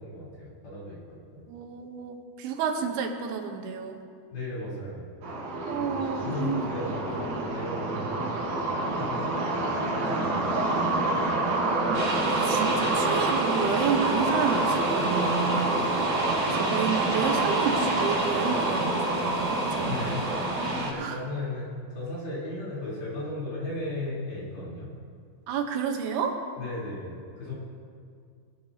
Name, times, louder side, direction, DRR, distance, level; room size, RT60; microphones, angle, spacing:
voice 1, 0.0-1.4 4.3-5.1 5.8-5.9 6.2-9.7 10.1-10.7 16.2-16.4 19.8-20.3 20.5-24.9 26.6-27.5, left 2 dB, 70° left, -9 dB, 5.5 m, -36 dB
voice 2, 1.5-4.0 5.7-6.8 7.1-7.4 10.5-10.9 11.5-15.8 16.5-20.2 21.0-21.2 25.5-26.4, right 6 dB, 80° right, 4 dB, 3.0 m, -31 dB
Morning in the Russia, 5.2-20.9, right 2 dB, 60° right, 2.3 m, -27 dB
sound 1, 11.9-20.9, right 1 dB, 40° right, 2.8 m, -35 dB
21.5 x 12.0 x 2.8 m, 2.2 s
omnidirectional pair, 4.6 m